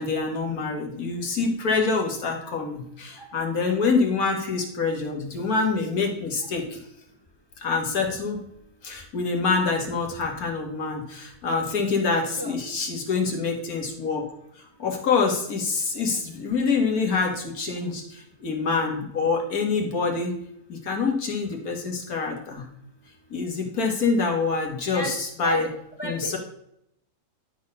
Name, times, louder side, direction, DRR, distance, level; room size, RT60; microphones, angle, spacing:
voice 1, 0.0-6.8 7.6-8.4 8.8-14.3 14.8-20.4 20.7-22.7 23.3-25.7 26.0-26.4, left 4 dB, 75° left, 2 dB, 2.1 m, -26 dB
voice 2, 24.9-25.7 26.0-26.4, equal, 20° left, 4 dB, 0.8 m, -32 dB
11.5 x 4.3 x 5.4 m, 0.75 s
omnidirectional pair, 1.6 m